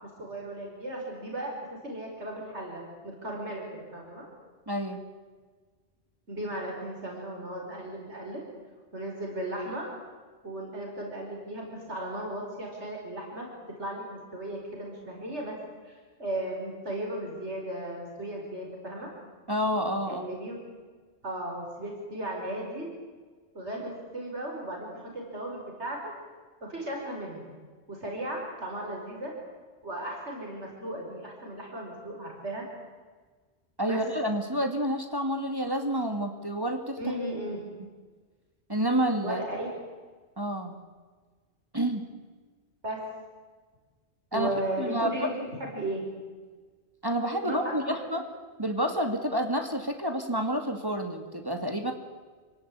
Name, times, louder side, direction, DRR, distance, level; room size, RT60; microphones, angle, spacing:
voice 1, 0.0-1.5 1.8-4.3 6.3-8.4 8.9-9.9 10.4-13.5 13.8-15.5 15.8-19.1 20.1-20.6 21.2-22.9 23.5-26.1 26.6-27.4 27.9-29.3 29.8-32.6 33.8-34.0 37.0-37.6 39.2-39.7 42.8-43.0 44.3-46.1 47.4-48.1, right 1 dB, 90° right, 0 dB, 5.7 m, -36 dB
voice 2, 4.7-5.0 19.5-20.2 33.8-37.0 38.7-39.4 40.4-40.8 41.7-42.0 44.3-44.5 44.8-45.3 47.0-47.8 48.1-48.2 48.6-51.9, equal, 20° right, 5 dB, 2.3 m, -29 dB
27.5 x 18.0 x 9.9 m, 1.4 s
omnidirectional pair, 1.1 m